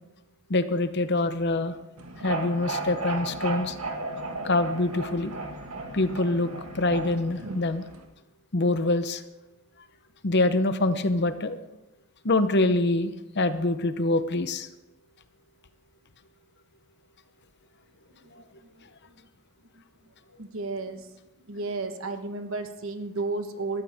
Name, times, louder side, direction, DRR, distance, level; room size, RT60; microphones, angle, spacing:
voice 1, 0.5-1.7 2.2-3.8 4.4-5.3 5.9-7.8 8.5-9.2 10.2-11.6 12.2-14.7, left 2 dB, 50° left, 11 dB, 0.9 m, -25 dB
sound 1, 2.0-8.0, right 2 dB, 80° right, 1.8 m, -35 dB
voice 2, 18.6-19.3 19.7-23.8, right 3 dB, 65° right, 7 dB, 1.3 m, -34 dB
20.0 x 13.5 x 3.6 m, 0.98 s
head